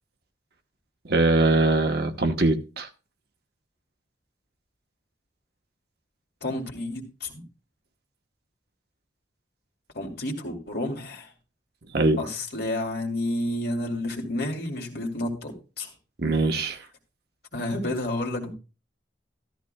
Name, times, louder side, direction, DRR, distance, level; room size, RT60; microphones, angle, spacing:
voice 1, 1.0-2.9 11.9-12.3 16.2-16.8, right 2 dB, 55° right, 1.1 m, -22 dB
voice 2, 6.4-7.4 9.9-11.3 12.2-15.9 17.5-18.5, left 1 dB, 55° left, 2.7 m, -30 dB
14.0 x 13.5 x 2.3 m
head